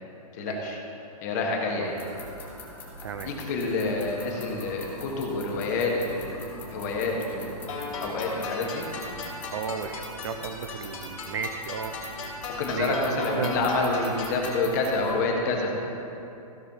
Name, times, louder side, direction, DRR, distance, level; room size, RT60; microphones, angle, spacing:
voice 1, 0.4-0.8 1.2-2.0 3.2-7.6 8.0-8.9 12.6-15.7, left 3 dB, 25° left, 0 dB, 1.4 m, -28 dB
sound 1, 1.8-15.1, left 1 dB, 10° left, 1.4 m, -43 dB
sound 2, 7.7-14.7, left 3 dB, 65° left, 3.0 m, -37 dB
voice 2, 9.5-11.9 12.7-13.7, right 6 dB, 45° right, 8 dB, 0.6 m, -34 dB
15.5 x 6.1 x 5.7 m, 2.8 s
hypercardioid pair, 180°, 19 cm